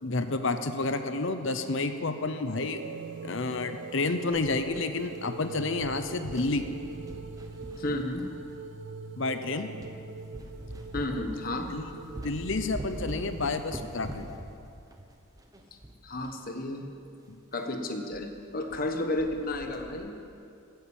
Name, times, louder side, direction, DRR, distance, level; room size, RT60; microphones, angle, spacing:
voice 1, 0.0-2.8 3.2-6.6 9.2-9.7 11.7-11.9 12.1-14.3 17.3-17.4, left 3 dB, 60° left, 9 dB, 0.8 m, -30 dB
sound 1, 2.5-13.6, right 4 dB, 55° right, 0.6 m, -43 dB
sound 2, 4.3-5.4 5.7-8.7 9.3-9.4 9.8-10.0 10.3-16.4 16.7-16.8 17.0-17.1 17.5-17.7 18.1-18.3 18.5-18.9 19.2-20.1, right 1 dB, 15° right, 1.0 m, -43 dB
voice 2, 7.8-8.2 10.9-11.7 16.0-16.9 17.5-20.1, left 1 dB, 40° left, 5 dB, 1.2 m, -32 dB
15.5 x 9.4 x 7.2 m, 2.6 s
head